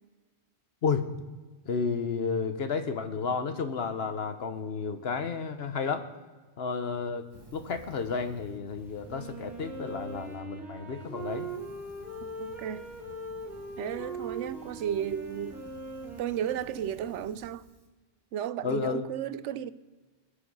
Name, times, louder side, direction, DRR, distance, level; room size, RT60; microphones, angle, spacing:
voice 1, 1.7-6.0 6.6-11.5 18.6-19.0, left 5 dB, 55° left, 1.1 m, -32 dB
Fire, 7.2-10.4 10.8-17.9, right 3 dB, 20° right, 1.3 m, -53 dB
Wind instrument woodwind instrument, 9.0-17.6, right 2 dB, ahead, 2.3 m, -41 dB
voice 2, 12.2-12.9 13.8-15.6 16.2-17.6 18.3-19.7, right 9 dB, 75° right, 0.9 m, -34 dB
20.0 x 7.0 x 5.4 m
omnidirectional pair, 1.3 m